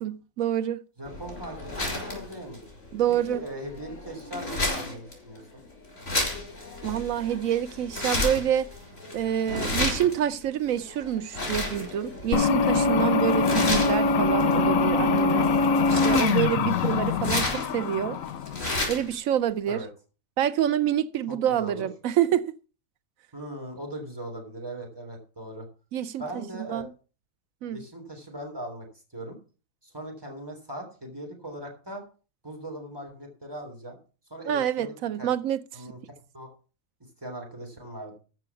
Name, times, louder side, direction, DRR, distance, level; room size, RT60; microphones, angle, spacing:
voice 1, 0.0-0.8 2.9-3.4 6.8-8.7 9.1-15.5 15.9-18.2 18.9-19.8 20.4-22.5 25.9-26.9 27.6-27.9 34.5-35.6, right 10 dB, 90° right, 1.1 m, -27 dB
voice 2, 1.0-2.6 3.3-5.6 5.9-6.3 16.7-17.0 19.6-19.9 21.3-21.9 23.3-25.7 26.2-26.8 27.7-28.9 29.1-29.4 29.8-32.0 32.4-34.0 34.3-35.3 35.7-36.5 37.2-38.2, right 1 dB, 15° right, 3.5 m, -39 dB
sound 1, 1.1-19.1, left 2 dB, 65° left, 5.0 m, -33 dB
sound 2, 12.3-18.7, left 4 dB, 80° left, 1.2 m, -23 dB
14.0 x 6.0 x 5.9 m
omnidirectional pair, 1.4 m